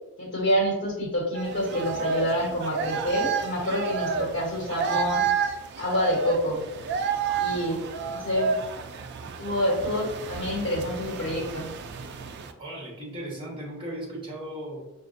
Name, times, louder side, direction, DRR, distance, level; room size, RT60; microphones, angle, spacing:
voice 1, 0.2-5.2 5.8-6.6 7.4-7.8 8.1-8.6 9.4-11.7, equal, 60° left, -4 dB, 1.2 m, -27 dB
sound 1, 1.3-12.5, right 6 dB, 55° right, 0.3 m, -31 dB
voice 2, 12.6-14.8, right 1 dB, 25° right, -3 dB, 1.2 m, -37 dB
5.0 x 2.4 x 2.5 m, 0.99 s
head